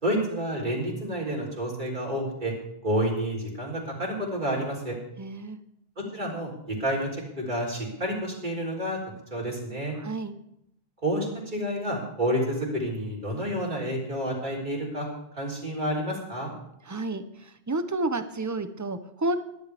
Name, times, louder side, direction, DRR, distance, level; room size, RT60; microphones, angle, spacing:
voice 1, 0.0-2.5 2.8-5.0 6.0-7.1 7.4-9.0 9.3-10.0 11.0-15.1 15.3-16.5, equal, 50° right, -3 dB, 4.0 m, -29 dB
voice 2, 5.2-5.6 10.0-10.3 16.9-19.3, right 2 dB, 20° right, 10 dB, 0.8 m, -30 dB
22.5 x 11.0 x 3.5 m, 0.79 s
omnidirectional pair, 1.0 m